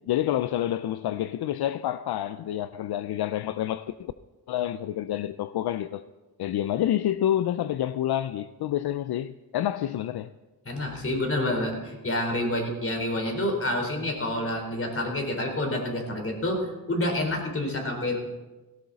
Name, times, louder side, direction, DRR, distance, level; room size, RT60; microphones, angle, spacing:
voice 1, 0.1-4.1 4.5-6.0 6.4-10.3, left 12 dB, 75° left, 0.5 m, -28 dB
voice 2, 10.6-16.6 16.9-18.2, left 1 dB, 35° left, 4.1 m, -28 dB
17.5 x 17.0 x 4.1 m
cardioid pair, 105°, 39 cm